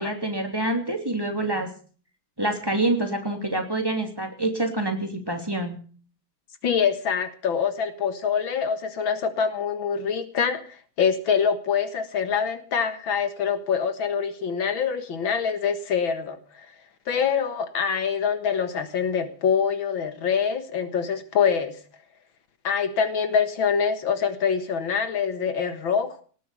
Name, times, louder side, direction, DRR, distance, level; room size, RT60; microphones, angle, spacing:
voice 1, 0.0-1.7 2.4-5.8, right 2 dB, 10° right, 4 dB, 3.1 m, -26 dB
voice 2, 6.6-10.6 11.0-16.4 17.1-21.8 22.6-26.2, left 6 dB, 75° left, 10 dB, 2.4 m, -25 dB
19.0 x 8.5 x 8.3 m, 0.42 s
omnidirectional pair, 2.2 m